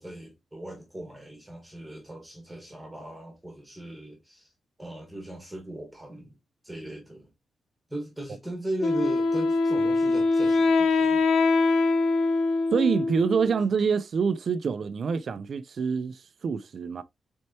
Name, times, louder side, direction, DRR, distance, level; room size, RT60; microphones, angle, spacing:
voice 1, 0.0-4.5 4.8-6.3 6.6-7.3 7.9-11.2, right 1 dB, 5° right, 1.5 m, -38 dB
Wind instrument woodwind instrument, 8.8-13.6, left 3 dB, 90° left, 0.7 m, -23 dB
voice 2, 12.7-17.0, right 6 dB, 45° right, 0.4 m, -26 dB
4.5 x 4.3 x 2.7 m
wide cardioid pair, 160°, 0 cm